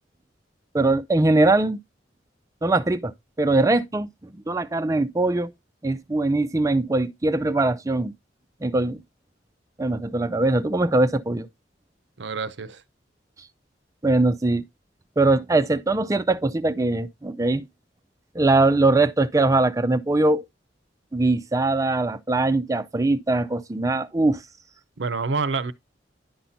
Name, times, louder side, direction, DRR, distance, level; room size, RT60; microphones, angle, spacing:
voice 1, 0.7-1.8 2.6-3.1 3.4-4.1 4.5-5.5 5.8-8.1 8.6-9.0 9.8-11.5 14.0-14.6 15.2-17.7 18.3-20.4 21.1-24.4, right 2 dB, 20° right, 0.4 m, -21 dB
voice 2, 12.2-12.8 25.0-25.7, right 4 dB, 80° right, 0.6 m, -27 dB
10.0 x 5.7 x 2.6 m
head